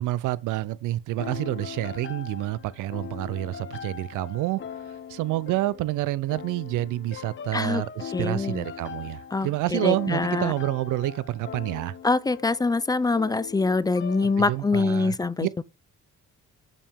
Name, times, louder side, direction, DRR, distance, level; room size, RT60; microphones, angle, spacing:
voice 1, 0.0-4.6 5.1-11.9 14.2-15.5, right 16 dB, 85° right, 0.5 m, -28 dB
sound 1, 1.2-14.9, left 8 dB, 40° left, 0.7 m, -40 dB
voice 2, 8.1-8.7 9.3-10.5 12.0-15.6, left 3 dB, 15° left, 0.3 m, -24 dB
6.7 x 5.8 x 3.5 m
cardioid pair, 90°, 30 cm